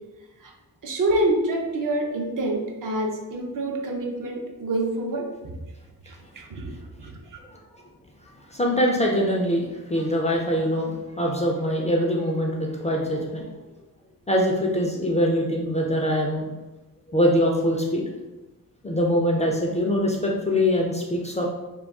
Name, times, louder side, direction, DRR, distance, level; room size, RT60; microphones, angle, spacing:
voice 1, 0.8-5.5 6.0-7.4, right 1 dB, 60° right, 1 dB, 0.6 m, -27 dB
voice 2, 8.5-13.4 14.3-16.5 17.1-18.0 18.8-21.4, equal, 20° left, -1 dB, 0.3 m, -23 dB
2.3 x 2.2 x 3.5 m, 1.1 s
cardioid pair, 105°, 36 cm